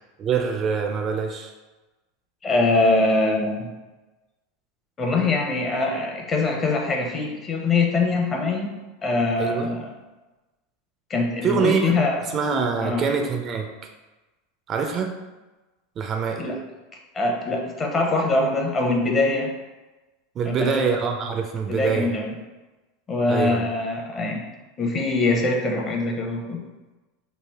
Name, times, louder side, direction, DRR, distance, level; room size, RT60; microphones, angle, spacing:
voice 1, 0.2-1.5 9.4-9.7 11.4-12.0 12.3-13.7 14.7-15.1 16.0-16.5 20.4-22.2 23.3-23.7, right 6 dB, 35° right, 4 dB, 0.4 m, -24 dB
voice 2, 2.4-3.7 5.0-9.9 11.1-12.2 12.8-13.1 16.4-16.6 17.1-19.5 20.5-20.9 21.7-22.3 23.1-24.4 24.8-26.6, left 2 dB, 30° left, 1 dB, 0.7 m, -23 dB
3.2 x 2.4 x 3.5 m, 1.1 s
hypercardioid pair, 110°, 0 cm